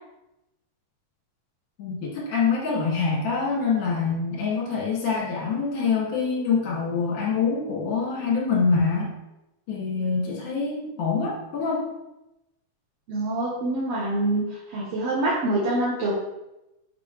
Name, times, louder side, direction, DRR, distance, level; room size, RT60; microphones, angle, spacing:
voice 1, 1.8-9.1 9.7-11.8, left 5 dB, 70° left, -4 dB, 3.9 m, -25 dB
voice 2, 13.1-16.2, right 2 dB, 55° right, -5 dB, 2.4 m, -25 dB
10.5 x 5.8 x 3.3 m, 0.92 s
omnidirectional pair, 3.8 m